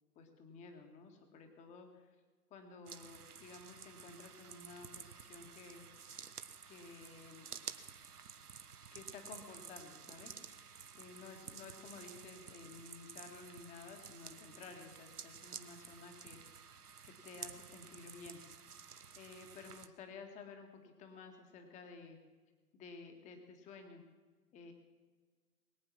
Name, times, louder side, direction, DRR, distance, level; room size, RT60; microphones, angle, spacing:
voice 1, 0.2-2.2 2.5-5.9 6.7-7.5 8.9-10.4 11.0-16.4 17.0-18.4 19.2-22.2 22.7-24.0 24.5-24.7, left 4 dB, 15° left, 5 dB, 1.8 m, -53 dB
sound 1, 2.9-19.9, right 6 dB, 75° right, 1.3 m, -52 dB
22.0 x 8.7 x 6.1 m, 1.4 s
figure-of-eight pair, 135°, 46 cm